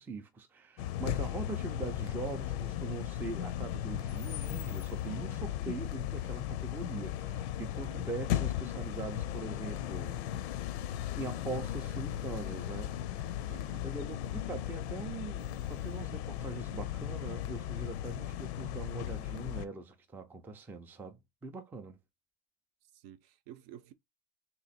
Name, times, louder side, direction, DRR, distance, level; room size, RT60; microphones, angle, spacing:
voice 1, 0.0-10.2 11.2-22.0, right 3 dB, 5° right, 0.4 m, -42 dB
sound 1, 0.8-19.7, left 11 dB, 70° left, 0.6 m, -36 dB
voice 2, 7.8-8.2 13.5-13.8 22.9-23.9, right 11 dB, 60° right, 0.7 m, -52 dB
3.0 x 3.0 x 4.2 m
supercardioid pair, 135°, 33 cm